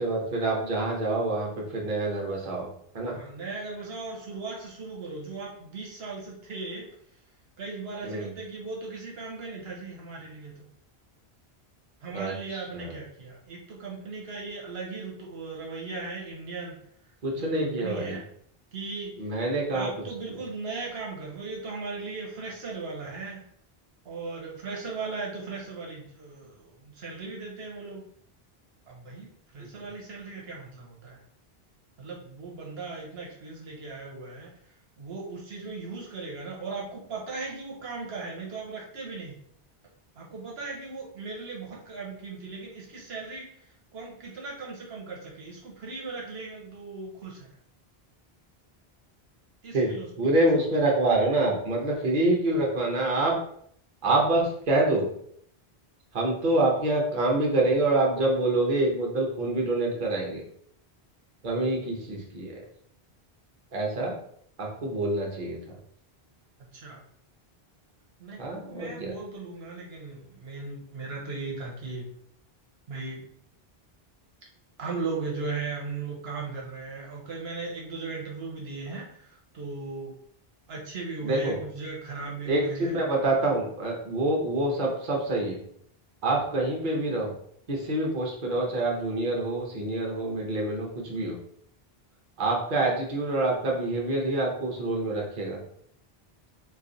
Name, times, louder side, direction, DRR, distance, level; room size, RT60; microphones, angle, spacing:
voice 1, 0.0-2.7 2.9-3.1 8.0-8.3 12.1-12.3 12.7-12.9 17.2-18.2 19.2-19.9 49.7-49.9 50.2-53.4 54.0-55.1 56.1-60.4 61.4-62.6 63.7-64.1 64.6-65.6 68.4-69.1 81.2-81.6 82.5-85.6 86.2-87.3 87.7-91.4 92.4-95.6, right 2 dB, 55° right, -2 dB, 1.0 m, -26 dB
voice 2, 3.1-6.9 7.6-10.7 12.0-16.8 17.3-18.2 18.7-19.3 19.7-23.4 24.0-28.0 28.9-31.2 32.0-34.5 35.0-39.3 40.2-47.5 49.6-50.6 66.7-67.0 68.2-72.1 72.9-73.2 74.8-80.1 80.7-83.0 84.7-84.9, right 3 dB, 75° right, -3 dB, 1.0 m, -37 dB
3.1 x 2.4 x 3.8 m, 0.67 s
omnidirectional pair, 1.0 m